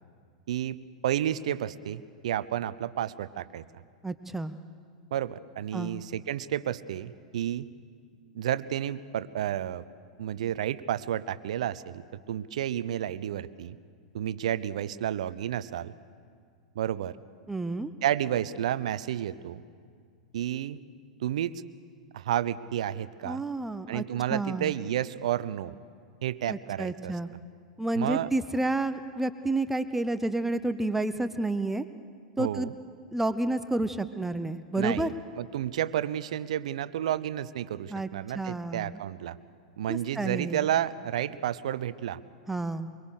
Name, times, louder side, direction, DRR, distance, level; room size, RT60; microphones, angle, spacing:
voice 1, 0.5-3.6 5.1-7.7 8.3-9.8 10.2-12.0 12.3-13.8 14.1-15.9 16.7-17.1 18.0-19.6 20.3-20.8 21.2-21.6 22.1-23.4 23.9-25.7 26.2-27.1 27.9-28.3 32.4-32.7 34.8-39.4 39.8-42.2, right 11 dB, 70° right, 17 dB, 0.7 m, -31 dB
voice 2, 4.0-4.6 5.7-6.0 17.5-17.9 23.2-24.0 24.3-24.7 26.5-27.3 27.8-31.8 32.4-32.7 33.1-35.1 37.9-38.1 38.3-39.0 39.9-40.7 42.5-42.9, right 2 dB, 5° right, 11 dB, 0.8 m, -30 dB
23.5 x 23.5 x 6.5 m, 2.1 s
hypercardioid pair, 100°, 4 cm